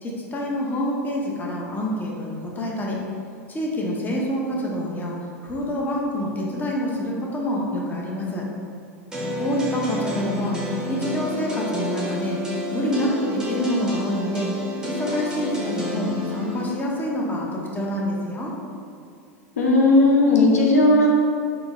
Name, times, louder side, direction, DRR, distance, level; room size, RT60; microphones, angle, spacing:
voice 1, 0.0-3.0 3.5-5.2 5.4-8.5 9.4-10.6 10.9-12.4 12.7-14.5 14.9-18.5, equal, 20° left, -3 dB, 0.7 m, -26 dB
sound 1, 9.1-16.7, left 1 dB, 10° right, 0.8 m, -29 dB
voice 2, 19.6-21.1, left 2 dB, 90° left, -1 dB, 0.5 m, -16 dB
3.8 x 2.4 x 3.5 m, 2.3 s
hypercardioid pair, 95°, 8 cm